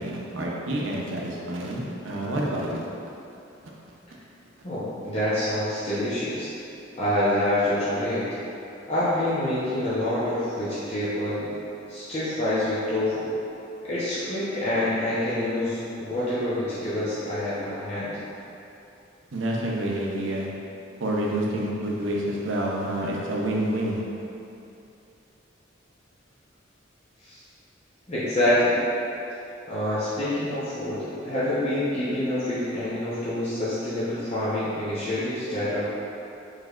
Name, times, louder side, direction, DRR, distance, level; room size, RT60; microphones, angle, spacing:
voice 1, 0.0-2.9 19.3-20.5 21.0-24.0, right 1 dB, 85° right, -3 dB, 0.6 m, -28 dB
voice 2, 4.6-6.5 7.0-8.2 8.9-11.5 11.9-13.3 13.8-18.1 27.2-27.4 28.1-28.8 29.7-35.8, left 1 dB, 35° left, -12 dB, 0.7 m, -26 dB
4.8 x 3.2 x 2.4 m, 2.8 s
head